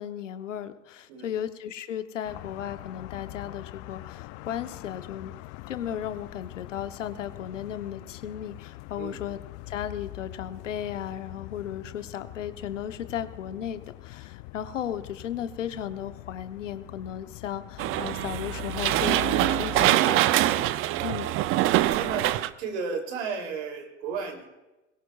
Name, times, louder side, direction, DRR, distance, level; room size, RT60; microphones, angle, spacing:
voice 1, 0.0-5.3 5.7-9.4 9.7-20.7 21.0-21.3, left 10 dB, 85° left, 10 dB, 1.0 m, -35 dB
sound 1, 2.2-19.9, left 19 dB, 50° left, 0.6 m, -43 dB
sound 2, 17.8-22.5, right 15 dB, 35° right, 0.5 m, -24 dB
voice 2, 20.9-21.6 21.9-22.3 22.6-24.5, right 5 dB, 70° right, 3 dB, 3.2 m, -34 dB
22.0 x 17.5 x 2.4 m, 1.0 s
hypercardioid pair, 95°, 36 cm